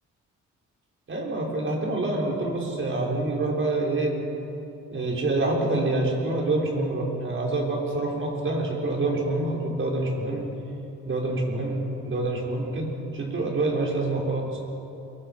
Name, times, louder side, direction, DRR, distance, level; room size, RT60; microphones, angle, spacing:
voice 1, 1.1-4.2 4.9-10.5 11.0-14.6, right 2 dB, 40° right, -1 dB, 6.2 m, -26 dB
30.0 x 23.0 x 6.1 m, 3.0 s
cardioid pair, 90°, 30 cm